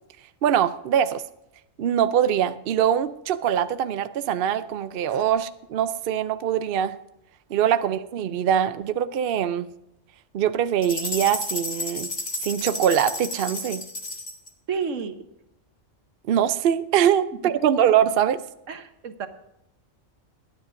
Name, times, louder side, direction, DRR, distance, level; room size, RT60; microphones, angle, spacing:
voice 1, 0.4-1.2 1.8-7.0 7.5-9.7 10.3-12.1 12.4-13.8 16.3-18.4, right 9 dB, 60° right, 12 dB, 0.7 m, -23 dB
sound 1, 10.8-14.5, left 2 dB, 35° left, 1.3 m, -32 dB
voice 2, 14.7-15.2 18.7-19.3, right 6 dB, 75° right, 8 dB, 1.4 m, -30 dB
21.0 x 10.0 x 2.6 m, 0.84 s
omnidirectional pair, 1.3 m